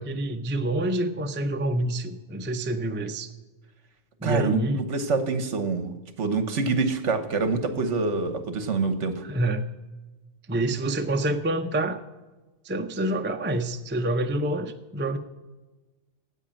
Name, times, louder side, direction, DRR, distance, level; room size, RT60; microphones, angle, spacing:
voice 1, 0.0-3.3 4.2-4.8 9.2-9.6 10.5-12.0 12.6-15.2, right 1 dB, 15° right, 6 dB, 0.4 m, -27 dB
voice 2, 4.2-5.9 6.2-9.2, right 4 dB, 65° right, 10 dB, 1.4 m, -26 dB
9.9 x 8.4 x 8.7 m, 1.2 s
omnidirectional pair, 1.3 m